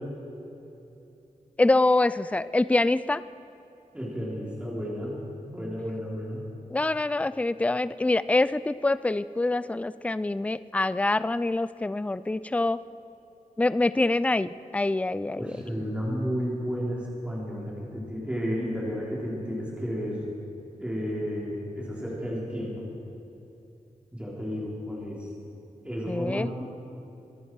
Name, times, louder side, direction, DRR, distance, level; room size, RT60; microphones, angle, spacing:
voice 1, 1.6-3.2 6.7-12.8 13.6-15.6 26.1-26.5, left 2 dB, 10° left, 16 dB, 0.3 m, -25 dB
voice 2, 3.9-5.2 5.4-6.4 15.3-20.2 20.8-22.7 24.1-25.3 25.8-26.7, equal, 10° right, -5 dB, 3.7 m, -32 dB
24.5 x 11.0 x 4.7 m, 2.9 s
wide cardioid pair, 90°, 14 cm